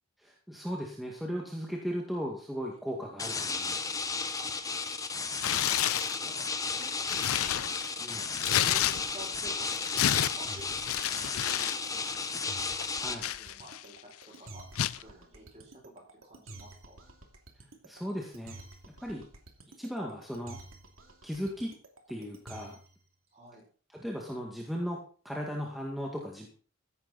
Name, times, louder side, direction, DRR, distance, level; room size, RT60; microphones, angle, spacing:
voice 1, 0.2-3.9 8.0-8.3 13.0-13.2 17.8-18.6 19.0-19.2 19.8-20.6 21.2-21.7 22.1-22.8 23.9-25.0 25.2-26.5, equal, ahead, -2 dB, 2.0 m, -36 dB
sound 1, 3.2-13.2, left 4 dB, 15° left, 1.0 m, -34 dB
Tearing, 5.4-6.2 6.7-9.3 9.6-11.8 12.0-12.3 12.8-14.0 14.8-15.0, left 11 dB, 85° left, 0.6 m, -30 dB
voice 2, 5.8-6.4 6.7-8.0 8.4-12.6 13.1-13.9 14.2-14.6 14.9-15.9 16.2-17.0 23.3-23.6, right 1 dB, 30° right, 0 dB, 6.4 m, -51 dB
sound 2, 7.4-23.0, right 2 dB, 70° right, 2.7 m, -50 dB
15.5 x 11.5 x 4.2 m, 0.41 s
head